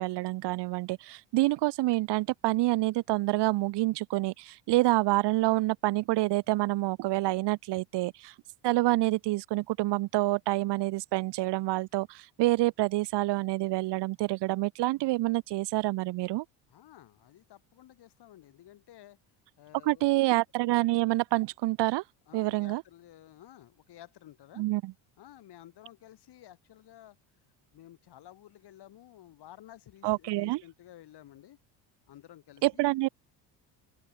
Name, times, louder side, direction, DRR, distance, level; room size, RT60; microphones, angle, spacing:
voice 1, 0.0-8.3 8.6-16.4 19.8-22.0 22.3-22.8 24.6-24.9 30.0-30.6 32.6-33.1, right 19 dB, 60° right, 1.0 m, -27 dB
voice 2, 16.7-19.2 19.6-20.2 22.3-24.7 25.2-27.2 27.7-31.6 32.1-32.8, left 13 dB, 60° left, 6.9 m, -53 dB
open air
supercardioid pair, 100°, 46 cm